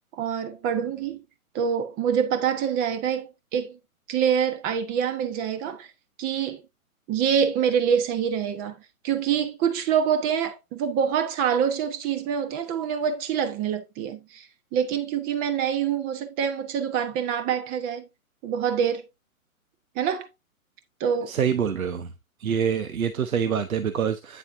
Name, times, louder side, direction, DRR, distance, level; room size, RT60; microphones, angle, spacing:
voice 1, 0.1-1.2 1.5-3.8 4.1-5.9 6.2-6.6 7.1-8.8 9.0-18.1 18.4-19.1 19.9-20.3 21.0-21.3, right 8 dB, 20° right, 1.1 m, -26 dB
voice 2, 21.3-22.1 22.4-24.4, right 7 dB, 70° right, 1.0 m, -26 dB
9.6 x 6.9 x 2.6 m
figure-of-eight pair, 125°, 43 cm